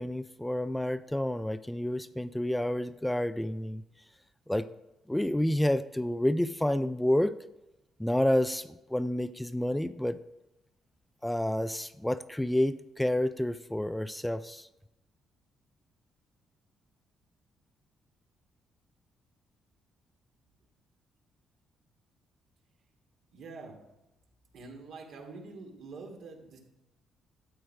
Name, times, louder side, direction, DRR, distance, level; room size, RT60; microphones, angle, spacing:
voice 1, 0.0-3.8 4.5-4.7 5.1-7.3 8.0-10.2 11.2-14.7, left 1 dB, 5° left, 0.4 m, -29 dB
voice 2, 23.3-23.8 24.5-26.6, right 3 dB, 75° right, 2.8 m, -45 dB
12.5 x 8.0 x 5.0 m
cardioid pair, 90°, 0 cm